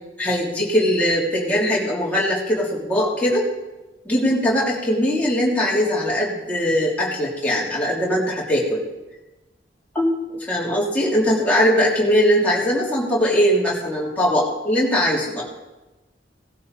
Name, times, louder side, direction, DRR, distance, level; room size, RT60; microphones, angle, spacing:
voice 1, 0.2-3.4 4.0-8.8 9.9-15.5, equal, 10° left, -6 dB, 3.4 m, -20 dB
17.5 x 12.5 x 4.2 m, 1.1 s
head